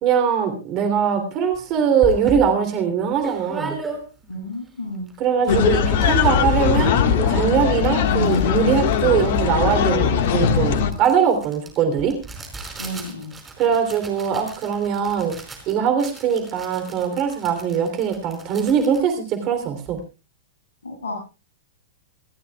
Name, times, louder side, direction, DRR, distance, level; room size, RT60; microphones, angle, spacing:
voice 1, 0.0-3.8 5.2-12.1 13.6-15.3 15.7-20.0, right 7 dB, 40° right, 7 dB, 3.3 m, -21 dB
sound 1, 1.5-1.6 2.0-4.4 4.8-4.9 5.1-5.5 5.8-6.7 6.9-20.0, right 3 dB, 15° right, 5.0 m, -37 dB
voice 2, 4.3-5.1 12.8-13.3 20.8-21.1, left 1 dB, 75° left, 0 dB, 7.8 m, -32 dB
sound 2, 5.5-10.9, left 7 dB, 55° left, 1.6 m, -20 dB
27.5 x 13.5 x 2.4 m, 0.31 s
figure-of-eight pair, 105°, 0 cm